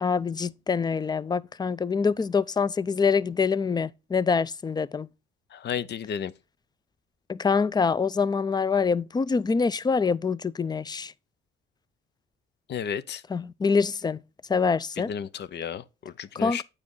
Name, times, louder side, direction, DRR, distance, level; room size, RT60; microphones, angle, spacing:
voice 1, 0.0-5.1 7.3-11.1 13.3-14.2 14.5-15.1 16.4-16.6, left 5 dB, 20° left, 0.4 m, -25 dB
voice 2, 5.5-6.3 12.7-13.2 15.0-16.6, left 8 dB, 60° left, 0.7 m, -33 dB
8.5 x 5.0 x 3.8 m
cardioid pair, 90°, 20 cm